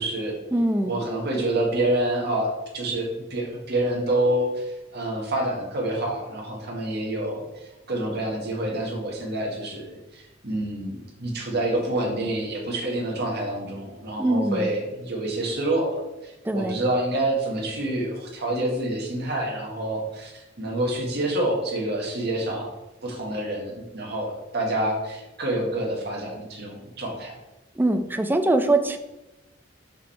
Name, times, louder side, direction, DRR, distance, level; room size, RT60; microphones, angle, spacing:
voice 1, 0.0-0.4 0.8-16.0 16.2-22.7 23.0-27.3, right 1 dB, 55° right, 0 dB, 1.5 m, -27 dB
voice 2, 0.5-1.0 14.2-14.7 16.4-16.8 27.8-29.0, right 2 dB, 10° right, 7 dB, 0.4 m, -22 dB
5.3 x 4.8 x 4.4 m, 0.99 s
head